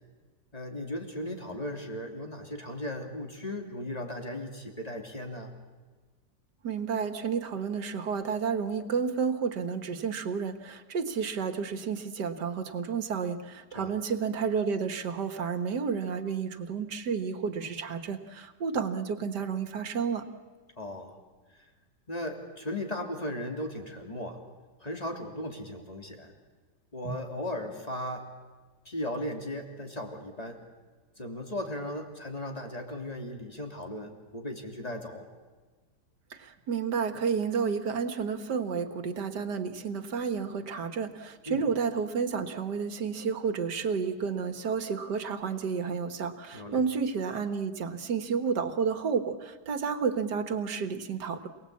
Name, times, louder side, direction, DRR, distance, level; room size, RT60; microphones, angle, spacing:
voice 1, 0.5-5.5 13.7-14.1 20.8-21.2 21.5-21.6 22.1-24.4 24.8-26.3 26.9-28.2 28.8-30.6 31.2-35.3 41.5-41.6 46.5-46.8, left 1 dB, 20° left, 3 dB, 3.0 m, -37 dB
voice 2, 6.6-20.2 27.0-27.2 36.3-51.5, right 6 dB, 75° right, 9 dB, 2.0 m, -31 dB
27.5 x 19.0 x 8.5 m, 1.4 s
omnidirectional pair, 1.8 m